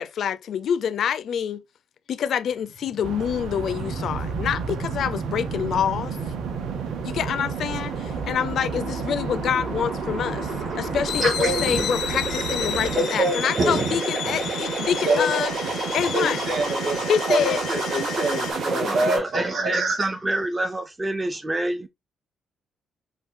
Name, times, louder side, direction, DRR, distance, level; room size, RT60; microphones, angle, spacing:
voice 1, 0.0-1.6 2.1-6.2 7.0-15.5 15.9-16.4 17.1-17.6, left 8 dB, 60° left, 0.4 m, -26 dB
sound 1, 2.6-19.2, right 3 dB, 65° right, 1.8 m, -31 dB
sound 2, 3.0-13.0, right 7 dB, 85° right, 0.5 m, -35 dB
sound 3, 11.1-18.5, left 9 dB, 90° left, 0.7 m, -33 dB
voice 2, 11.2-11.9 12.9-14.0 14.3-14.4 14.8-15.7 16.1-20.1, right 2 dB, 45° right, 2.2 m, -26 dB
voice 3, 18.7-21.9, right 2 dB, 15° right, 0.3 m, -27 dB
5.7 x 2.2 x 2.5 m
cardioid pair, 150°, 0 cm